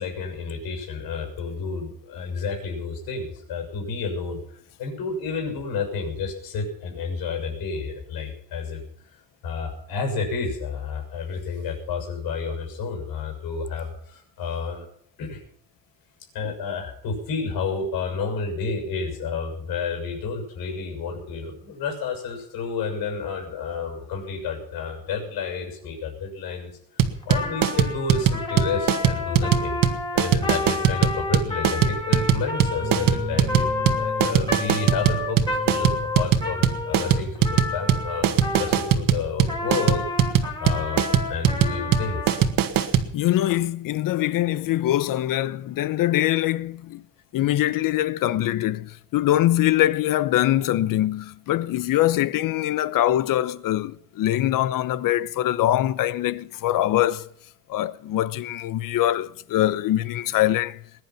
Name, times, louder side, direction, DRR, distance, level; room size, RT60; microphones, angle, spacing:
voice 1, 0.0-8.8 9.4-14.8 15.2-15.4 16.3-29.8 30.1-40.2 40.6-41.0 41.3-42.4, left 5 dB, 85° left, 6.6 m, -30 dB
sound 1, 27.0-43.1, right 9 dB, 65° right, 1.8 m, -20 dB
Trumpet, 27.2-39.0 39.5-42.5, left 3 dB, 15° left, 3.5 m, -30 dB
sound 2, 32.8-39.4, right 2 dB, 35° right, 1.5 m, -37 dB
voice 2, 43.1-47.0 47.3-57.3 57.7-60.8, left 14 dB, 65° left, 0.9 m, -23 dB
21.0 x 11.0 x 5.9 m
cardioid pair, 165°, 36 cm